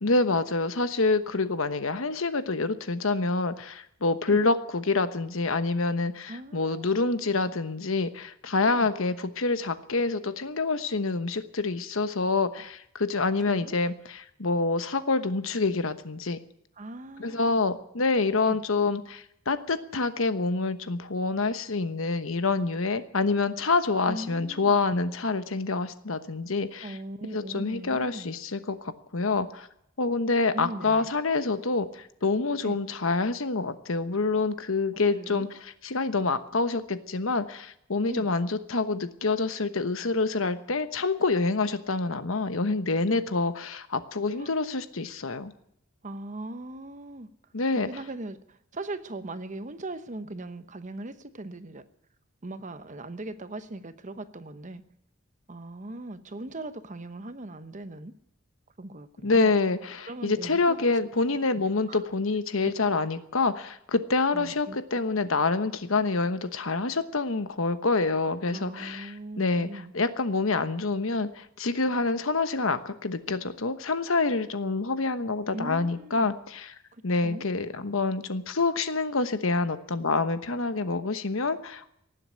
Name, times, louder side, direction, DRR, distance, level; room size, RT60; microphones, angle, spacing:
voice 1, 0.0-16.4 17.2-27.0 27.3-29.7 30.0-45.5 47.5-47.9 59.2-69.7 69.9-76.7 77.0-82.0, left 3 dB, 75° left, 11 dB, 1.1 m, -27 dB
voice 2, 6.3-7.2 8.7-8.9 13.4-13.8 16.8-17.6 18.4-18.6 24.1-24.8 26.8-28.3 30.5-31.1 32.6-32.8 35.1-35.5 38.1-38.3 44.4-44.5 46.0-47.3 47.8-51.9 52.4-54.8 55.5-58.1 58.8-59.5 60.1-60.9 61.9-62.0 62.6-62.7 64.3-64.8 68.5-69.9 75.5-76.3 76.9-77.4, right 2 dB, 35° right, 11 dB, 0.9 m, -39 dB
18.5 x 7.8 x 9.6 m, 0.74 s
head